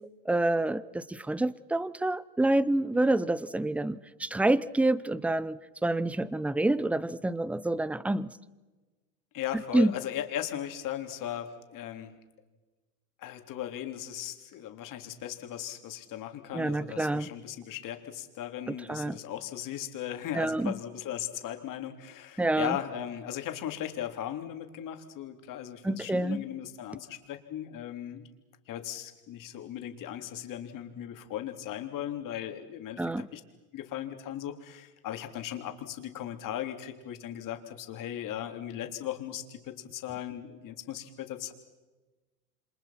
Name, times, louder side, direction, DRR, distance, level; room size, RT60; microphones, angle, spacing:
voice 1, 0.3-8.3 9.7-9.9 16.5-17.3 18.7-19.2 20.3-20.7 22.4-22.8 25.8-26.4 33.0-33.3, right 2 dB, 5° right, 19 dB, 0.7 m, -28 dB
voice 2, 9.3-12.1 13.2-28.3 28.7-33.4 33.7-41.5, left 11 dB, 45° left, 6 dB, 3.5 m, -37 dB
28.5 x 26.5 x 5.9 m, 1.2 s
hypercardioid pair, 105°, 47 cm